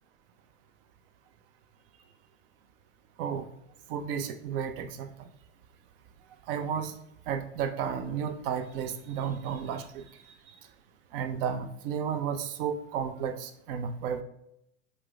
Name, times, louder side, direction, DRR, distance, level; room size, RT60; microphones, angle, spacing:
voice 1, 3.9-5.1 6.5-6.9 7.3-10.0 11.1-14.2, right 7 dB, 45° right, 8 dB, 0.4 m, -32 dB
4.5 x 2.0 x 2.2 m, 0.78 s
hypercardioid pair, 95°, 41 cm